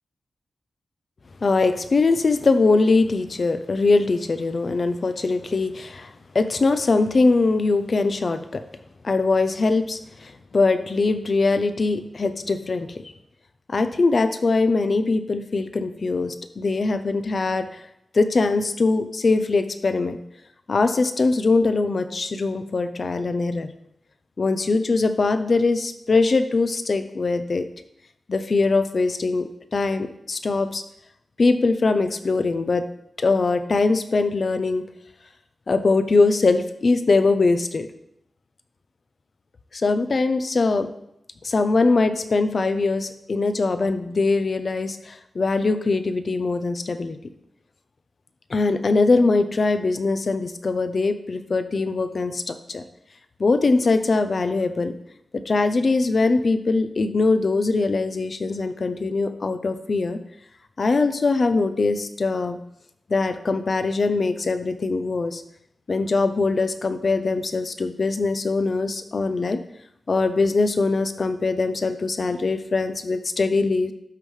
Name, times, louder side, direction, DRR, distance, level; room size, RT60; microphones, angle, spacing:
voice 1, 1.4-8.6 9.0-13.0 13.7-17.8 18.1-20.2 20.7-23.7 24.4-27.7 28.3-30.8 31.4-32.9 33.2-34.8 35.7-37.9 39.7-40.9 41.4-47.2 48.5-52.8 53.4-54.9 55.3-60.2 60.8-62.6 63.1-65.4 65.9-69.6 70.1-73.9, left 3 dB, 40° left, 9 dB, 0.5 m, -22 dB
12.5 x 5.4 x 3.2 m, 0.79 s
wide cardioid pair, 175°, 0 cm